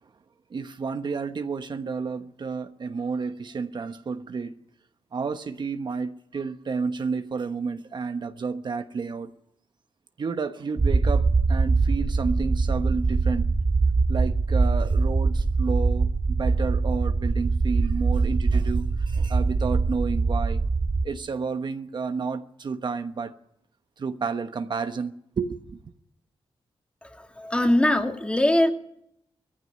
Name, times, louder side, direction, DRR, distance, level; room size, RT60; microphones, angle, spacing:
voice 1, 0.5-4.5 5.1-9.3 10.2-13.5 14.1-20.6 21.0-23.3 24.0-25.8, right 5 dB, 50° right, 1.1 m, -31 dB
sound 1, 10.8-21.0, right 4 dB, 35° right, 0.8 m, -23 dB
voice 2, 27.0-28.7, left 1 dB, 10° left, 2.3 m, -22 dB
18.5 x 15.0 x 9.6 m
wide cardioid pair, 100°, 9 cm